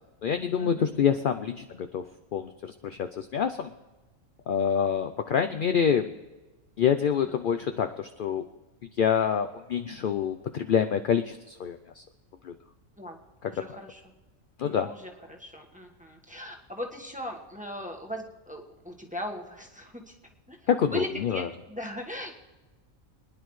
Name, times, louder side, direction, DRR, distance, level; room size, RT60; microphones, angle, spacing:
voice 1, 0.2-2.0 2.3-3.7 4.5-6.1 6.8-8.5 9.0-12.0 12.4-12.5 13.4-13.5 14.6-14.9 20.7-21.5, left 7 dB, 65° left, 7 dB, 0.5 m, -26 dB
voice 2, 13.4-14.0 14.6-20.0 20.5-20.6 20.9-22.3, left 1 dB, 5° right, 0 dB, 1.2 m, -38 dB
25.0 x 10.0 x 3.2 m, 1.2 s
omnidirectional pair, 1.4 m